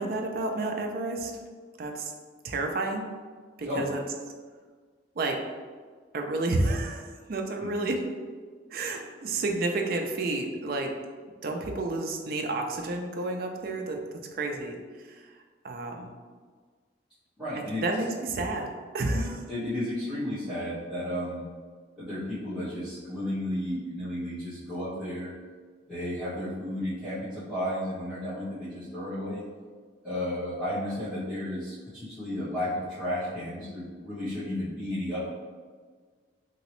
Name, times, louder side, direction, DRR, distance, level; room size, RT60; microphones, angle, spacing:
voice 1, 0.0-1.3 1.8-2.1 2.4-3.1 3.6-4.0 5.2-5.4 6.1-8.0 8.7-10.9 11.4-14.0 14.3-15.3 15.6-16.1 17.8-19.4, right 2 dB, 55° right, 3 dB, 0.4 m, -30 dB
voice 2, 7.6-8.0 17.4-17.8 19.1-21.4 22.0-25.3 25.9-29.4 30.0-35.3, left 1 dB, ahead, -19 dB, 1.3 m, -33 dB
2.9 x 2.9 x 3.0 m, 1.5 s
head